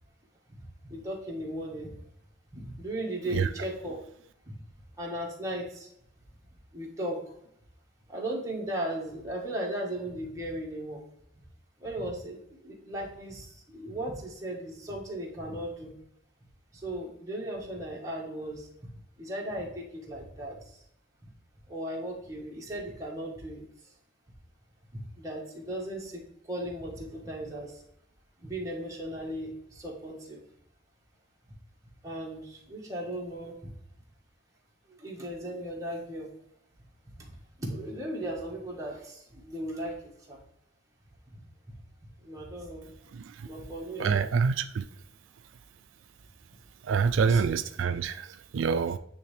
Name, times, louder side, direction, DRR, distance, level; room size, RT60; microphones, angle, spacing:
voice 1, 0.8-1.9 2.5-4.0 5.0-5.9 6.7-7.2 8.1-11.0 11.8-15.9 16.8-18.7 19.2-20.6 21.7-23.6 25.2-26.2 26.5-27.8 28.4-30.4 32.0-33.7 35.0-36.3 37.2-37.3 37.6-40.0 40.3-40.4 41.3-41.4 42.2-42.9 43.4-44.2 47.3-47.4, right 1 dB, 15° right, -2 dB, 1.5 m, -36 dB
voice 2, 43.1-43.5 44.0-44.9 46.8-49.0, right 5 dB, 85° right, 10 dB, 0.3 m, -27 dB
9.3 x 3.2 x 3.2 m, 0.73 s
head